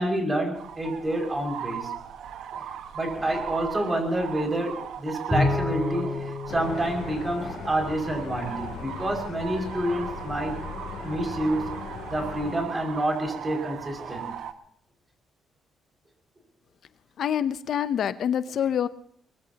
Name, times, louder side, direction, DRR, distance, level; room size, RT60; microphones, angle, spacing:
voice 1, 0.0-1.9 2.5-2.6 2.9-10.6 11.0-11.6 12.1-14.3, right 1 dB, 20° right, 2 dB, 5.9 m, -28 dB
sound 1, 0.5-14.5, right 9 dB, 75° right, 1.3 m, -38 dB
Bowed string instrument, 5.3-7.9, left 3 dB, 5° left, 3.0 m, -29 dB
sound 2, 6.5-12.6, left 7 dB, 80° left, 2.8 m, -39 dB
voice 2, 17.2-18.9, left 9 dB, 65° left, 14 dB, 0.7 m, -26 dB
24.0 x 21.0 x 2.9 m, 0.65 s
cardioid pair, 90°, 0 cm